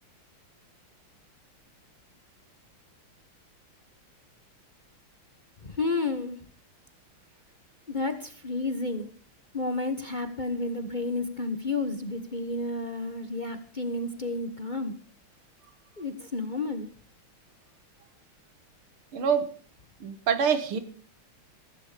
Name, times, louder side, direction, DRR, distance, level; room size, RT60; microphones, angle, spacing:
voice 1, 5.6-6.4 7.9-9.1 9.5-14.9 16.0-16.9, left 3 dB, 25° left, 8 dB, 1.2 m, -31 dB
voice 2, 19.1-19.5 20.0-20.8, right 7 dB, 80° right, 11 dB, 2.4 m, -25 dB
15.5 x 15.0 x 5.1 m, 0.42 s
omnidirectional pair, 2.3 m